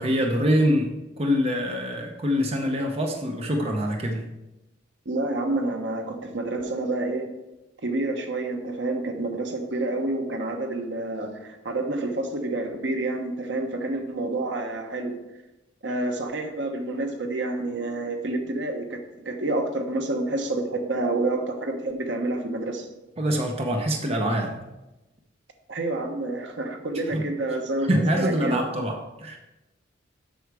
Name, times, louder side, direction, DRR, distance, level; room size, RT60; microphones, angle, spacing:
voice 1, 0.0-4.3 23.2-24.7 27.1-27.3 27.9-29.4, equal, 35° right, 2 dB, 0.8 m, -25 dB
voice 2, 5.0-7.3 7.8-15.2 15.8-22.9 25.7-28.6, right 2 dB, 70° right, 4 dB, 1.1 m, -28 dB
7.9 x 6.4 x 4.8 m, 1.0 s
head